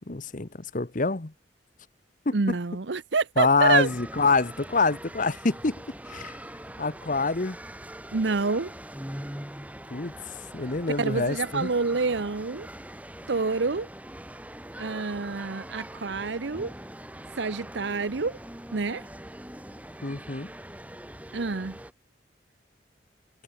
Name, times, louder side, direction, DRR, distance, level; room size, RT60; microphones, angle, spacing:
voice 1, 0.1-1.3 2.2-2.4 3.4-5.8 6.1-6.4 6.8-7.6 9.9-10.1 10.5-11.7 20.0-20.5, left 3 dB, 45° left, 1.1 m, -25 dB
voice 2, 2.3-3.9 8.1-8.7 11.0-12.7 13.3-13.9 14.8-16.7 17.4-18.4 18.7-19.1 21.3-21.8, right 4 dB, 75° right, 0.8 m, -27 dB
sound 1, 3.7-21.9, right 1 dB, 10° right, 3.2 m, -42 dB
head